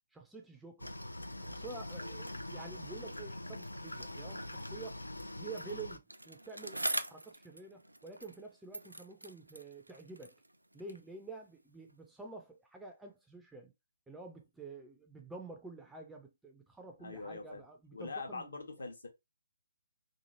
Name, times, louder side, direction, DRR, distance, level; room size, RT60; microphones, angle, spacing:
voice 1, 0.1-0.9 1.4-5.0 5.4-10.3 10.7-13.7 14.1-18.6, right 3 dB, 5° right, 0.4 m, -49 dB
sound 1, 0.8-6.0, left 1 dB, 80° left, 0.3 m, -43 dB
Bicycle, 6.1-8.5 8.7-11.1 11.9-12.0, right 1 dB, 80° right, 0.3 m, -42 dB
voice 2, 17.0-17.6 17.9-19.1, left 3 dB, 65° left, 0.9 m, -43 dB
2.8 x 2.5 x 2.7 m
figure-of-eight pair, 135°, 0 cm